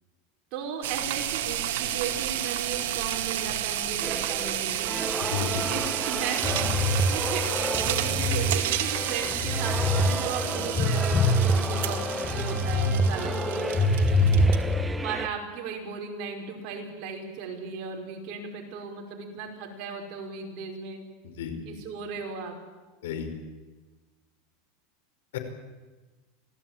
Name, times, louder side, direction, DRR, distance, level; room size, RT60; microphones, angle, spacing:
voice 1, 0.5-4.9 5.7-14.0 15.0-21.0 21.6-22.5, right 5 dB, 45° right, 1 dB, 5.5 m, -36 dB
sound 1, 0.8-14.7, right 12 dB, 75° right, 2.1 m, -31 dB
sound 2, 4.0-15.3, right 3 dB, 10° right, 1.0 m, -35 dB
voice 2, 5.2-5.8 10.0-10.1 10.4-10.5 14.2-14.3 21.2-21.5 23.0-23.3 25.3-25.4, left 8 dB, 85° left, 6 dB, 5.0 m, -33 dB
sound 3, 6.4-8.5 9.0-10.0 10.4-13.0 13.4-14.8, left 2 dB, 20° left, 1.8 m, -25 dB
25.5 x 17.0 x 9.1 m, 1.2 s
supercardioid pair, 150°, 0 cm